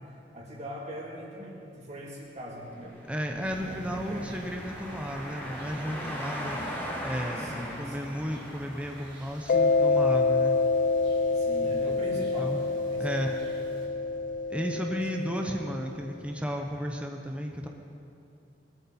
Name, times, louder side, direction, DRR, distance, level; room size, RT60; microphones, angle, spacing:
voice 1, 0.0-2.9 3.6-4.3 7.4-8.2 11.3-13.4 13.9-14.0 14.9-15.8, equal, 40° right, -4 dB, 3.1 m, -42 dB
sound 1, 3.0-9.7, equal, 10° left, 3.4 m, -39 dB
voice 2, 3.1-6.6 7.0-10.6 11.7-11.9 12.4-12.6 13.0-13.4 14.5-17.7, equal, 5° right, 2 dB, 0.8 m, -33 dB
sound 2, 3.4-13.8, equal, 90° right, 3.6 m, -49 dB
Mallet percussion, 9.5-15.9, left 3 dB, 50° left, 0.3 m, -27 dB
20.5 x 12.5 x 4.3 m, 2.7 s
head